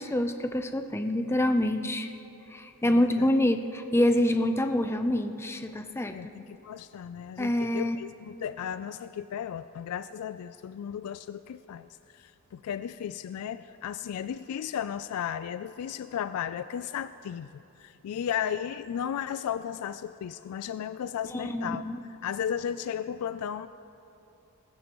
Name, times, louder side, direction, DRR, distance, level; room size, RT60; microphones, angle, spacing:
voice 1, 0.0-2.1 2.5-6.1 7.4-8.0 21.3-22.0, left 1 dB, 10° left, 7 dB, 0.4 m, -26 dB
voice 2, 2.8-3.3 6.1-21.8 22.2-23.7, left 9 dB, 80° left, 13 dB, 0.3 m, -35 dB
19.0 x 16.0 x 3.0 m, 2.9 s
head